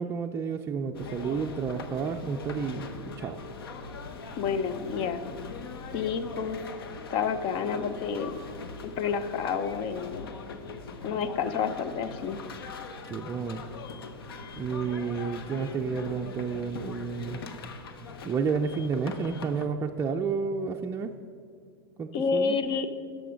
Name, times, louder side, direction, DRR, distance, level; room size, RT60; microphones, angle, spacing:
voice 1, 0.0-3.4 13.1-13.6 14.5-17.4 18.2-21.1 22.0-22.6, right 5 dB, 20° right, 3 dB, 0.4 m, -31 dB
sound 1, 0.9-19.7, left 4 dB, 85° left, 0.8 m, -41 dB
voice 2, 4.4-5.2 5.9-6.6 7.1-8.4 8.8-10.3 11.0-12.4 22.1-22.9, left 6 dB, 45° left, 11 dB, 0.7 m, -29 dB
11.5 x 6.3 x 5.1 m, 2.3 s
hypercardioid pair, 110°, 12 cm